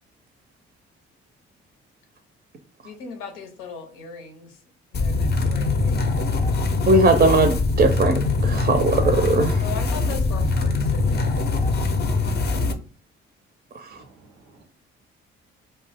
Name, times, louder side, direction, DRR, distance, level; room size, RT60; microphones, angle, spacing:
voice 1, 2.8-4.6 4.9-6.1 9.6-11.4, left 5 dB, 85° left, 5 dB, 0.7 m, -38 dB
sound 1, 4.9-12.7, left 3 dB, 35° left, 0.5 m, -22 dB
voice 2, 6.9-9.6 13.7-14.0, right 2 dB, 30° right, 7 dB, 0.5 m, -19 dB
voice 3, 13.9-14.6, right 3 dB, 90° right, 4 dB, 0.7 m, -53 dB
2.6 x 2.2 x 3.3 m, 0.39 s
hypercardioid pair, 45°, 30 cm